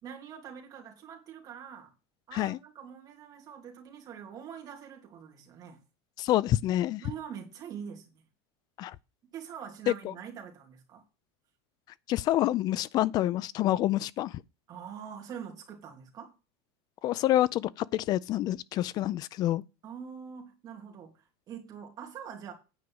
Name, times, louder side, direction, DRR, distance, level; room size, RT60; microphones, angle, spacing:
voice 1, 0.0-1.9 2.3-5.8 7.0-8.2 9.3-11.0 14.7-16.3 19.8-22.5, right 8 dB, 25° right, 3.3 m, -44 dB
voice 2, 6.2-7.0 8.8-8.9 10.0-10.1 12.1-14.4 17.0-19.6, left 14 dB, 30° left, 0.4 m, -27 dB
9.7 x 5.1 x 7.8 m
supercardioid pair, 165°, 14 cm